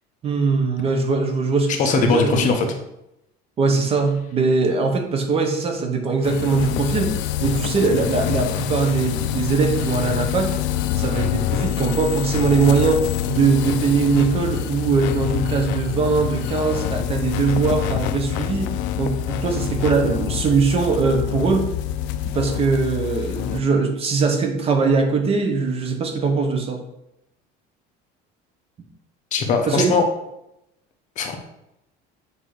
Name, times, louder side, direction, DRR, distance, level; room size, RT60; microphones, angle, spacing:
voice 1, 0.2-2.7 3.6-10.5 11.0-13.0 13.3-21.6 22.2-26.8 29.7-29.9, right 4 dB, 30° right, 5 dB, 0.7 m, -21 dB
voice 2, 1.8-2.7 29.3-30.0 31.2-31.4, left 5 dB, 40° left, 4 dB, 0.8 m, -20 dB
sound 1, 6.2-23.6, left 12 dB, 70° left, 0.4 m, -26 dB
7.8 x 2.8 x 4.8 m, 0.85 s
cardioid pair, 165°, 20 cm